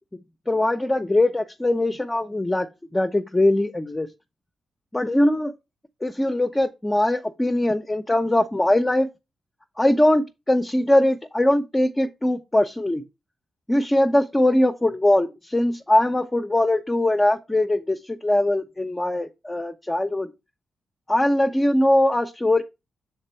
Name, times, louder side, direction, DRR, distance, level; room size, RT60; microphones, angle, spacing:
voice 1, 0.5-2.7 2.9-4.1 4.9-5.5 6.0-9.1 9.8-13.0 13.7-20.3 21.1-22.6, left 1 dB, 20° left, 0.8 m, -21 dB
6.6 x 3.6 x 4.5 m
supercardioid pair, 50°, 0 cm